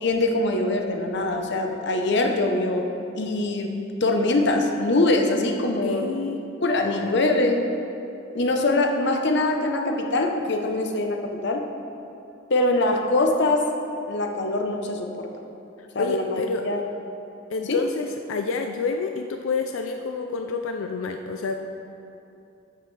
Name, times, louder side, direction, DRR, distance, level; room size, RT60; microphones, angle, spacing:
voice 1, 0.0-2.9 3.2-3.7 4.0-6.1 6.6-7.7 8.3-11.7 12.5-13.7 14.1-15.3 15.9-16.8 17.7-17.8, left 2 dB, 60° left, 3 dB, 0.9 m, -23 dB
voice 2, 5.8-6.4 6.8-7.5 15.8-16.7 17.5-21.6, left 4 dB, 90° left, 5 dB, 0.4 m, -29 dB
13.5 x 7.5 x 3.3 m, 2.8 s
head